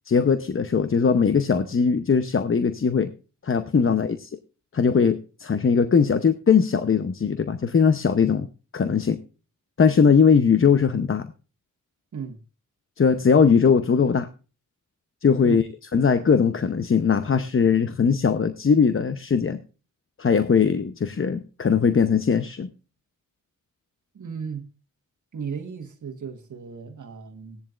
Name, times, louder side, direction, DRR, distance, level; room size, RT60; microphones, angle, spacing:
voice 1, 0.1-3.1 3.4-4.3 4.7-8.5 8.7-9.2 9.8-11.3 13.0-14.3 15.2-15.7 15.9-19.6 20.2-22.7, left 6 dB, 40° left, 0.8 m, -20 dB
voice 2, 24.1-24.7 25.3-27.6, right 6 dB, 65° right, 1.4 m, -35 dB
16.5 x 10.5 x 2.5 m
cardioid pair, 75°, 33 cm